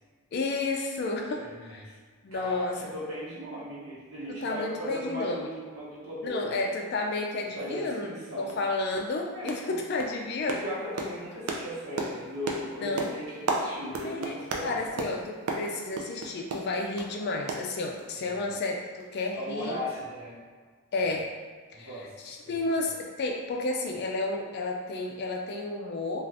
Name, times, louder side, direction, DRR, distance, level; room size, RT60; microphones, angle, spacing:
voice 1, 0.3-1.9 2.2-2.7 4.4-5.4 6.2-8.1 8.4-10.6 12.8-13.1 13.8-14.4 14.6-19.8 20.9-21.3 21.8-26.3, left 2 dB, 45° left, 1 dB, 0.3 m, -31 dB
voice 2, 1.4-1.9 2.3-6.6 7.5-8.5 9.3-9.8 10.6-14.8 18.1-18.4 19.3-20.4 21.7-22.1 22.4-22.6, equal, 60° right, -7 dB, 1.0 m, -37 dB
sound 1, 8.0-8.1 8.5-8.7 8.9-9.2 9.5-9.7 10.0-17.1 17.5-18.3 18.5-18.6 19.0-19.1, right 2 dB, 75° right, 0.4 m, -35 dB
2.5 x 2.4 x 3.3 m, 1.5 s
head